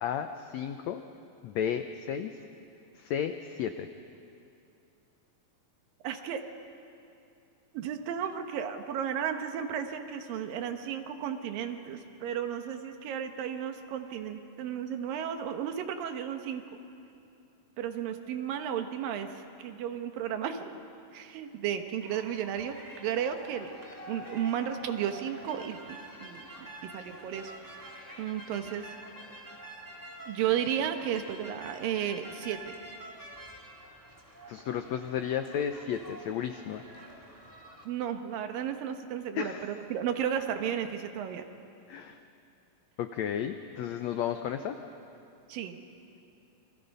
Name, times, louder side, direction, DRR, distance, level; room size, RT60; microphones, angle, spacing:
voice 1, 0.0-1.0 1.4-2.3 3.0-3.9 34.5-36.8 39.3-39.6 41.9-42.2 43.0-44.8, left 9 dB, 85° left, 7 dB, 1.5 m, -33 dB
voice 2, 6.0-6.4 7.7-16.6 17.8-20.8 21.1-23.7 24.1-27.5 28.2-28.9 30.3-32.7 37.9-41.4 45.5-45.8, right 9 dB, 80° right, 7 dB, 2.9 m, -34 dB
sound 1, 22.0-37.8, right 1 dB, 5° right, 1.8 m, -47 dB
28.5 x 23.5 x 5.5 m, 2.6 s
omnidirectional pair, 4.0 m